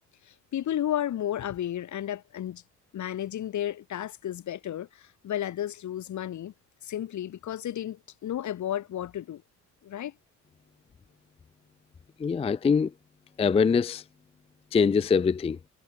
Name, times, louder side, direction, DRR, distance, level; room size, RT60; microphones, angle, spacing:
voice 1, 0.3-2.6 2.9-6.5 6.8-9.4 9.8-10.1, left 11 dB, 70° left, 6.4 m, -33 dB
voice 2, 12.2-12.9 13.4-14.0 14.7-15.6, left 5 dB, 20° left, 0.4 m, -23 dB
cardioid pair, 90°, 30 cm